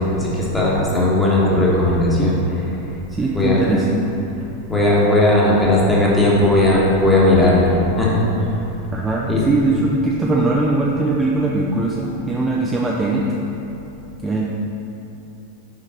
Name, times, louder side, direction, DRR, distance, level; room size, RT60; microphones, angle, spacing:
voice 1, 0.1-2.3 3.3-3.7 4.7-8.5 9.3-9.4, left 1 dB, 10° left, -6 dB, 1.4 m, -16 dB
voice 2, 3.1-4.0 8.9-13.3 14.2-14.5, right 2 dB, 15° right, -3 dB, 0.5 m, -20 dB
5.9 x 5.1 x 4.2 m, 3.0 s
figure-of-eight pair, 90°, 0 cm